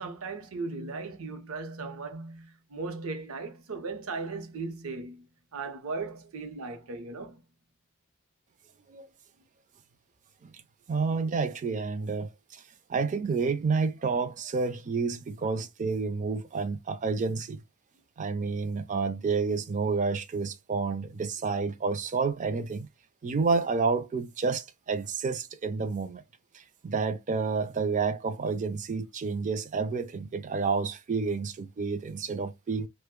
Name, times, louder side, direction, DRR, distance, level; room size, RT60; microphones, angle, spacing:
voice 1, 0.0-5.3 5.5-7.4 15.4-15.7, right 3 dB, 75° right, 0.7 m, -37 dB
voice 2, 10.9-12.6 12.9-17.6 18.2-22.9 23.2-26.2 26.5-32.9, right 4 dB, 35° right, 0.4 m, -29 dB
2.9 x 2.1 x 3.5 m
head